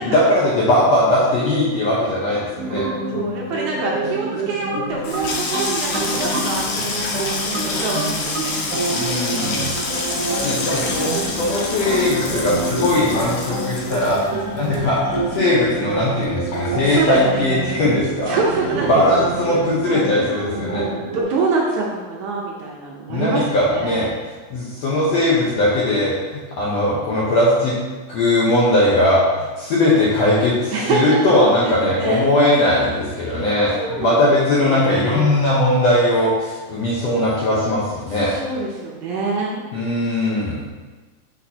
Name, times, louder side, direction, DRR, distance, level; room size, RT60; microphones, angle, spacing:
voice 1, 0.0-2.9 8.9-9.7 10.4-14.2 14.5-18.4 18.9-20.9 23.1-24.1 24.5-27.7 28.1-38.3 39.7-40.6, left 1 dB, 70° left, -6 dB, 1.6 m, -19 dB
sound 1, 2.6-21.2, right 3 dB, 55° right, 2.3 m, -27 dB
voice 2, 3.1-8.7 16.8-17.5 18.3-19.0 19.4-19.6 20.6-24.1 30.7-31.4 31.6-32.3 33.2-33.5 33.8-35.3 38.1-39.6, right 3 dB, 75° right, -3 dB, 2.0 m, -26 dB
Water tap faucet / Sink (filling or washing), 4.9-17.7 18.0-18.7 19.0-19.3, left 3 dB, 90° left, 2.7 m, -27 dB
6.2 x 5.9 x 2.8 m, 1.3 s
omnidirectional pair, 4.0 m